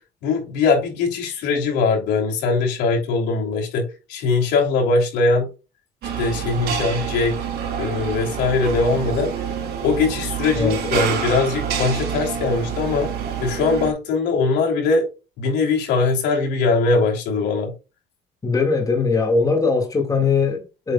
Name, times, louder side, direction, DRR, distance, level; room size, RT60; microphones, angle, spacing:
voice 1, 0.2-5.5 6.2-7.4 7.7-9.3 9.8-13.1 13.4-15.1 15.4-17.7, left 4 dB, 85° left, 3.0 m, -21 dB
sound 1, 6.0-13.9, right 8 dB, 70° right, 3.1 m, -27 dB
voice 2, 18.4-20.9, left 4 dB, 20° left, 2.0 m, -20 dB
8.1 x 6.4 x 2.3 m
cardioid pair, 110°, 17 cm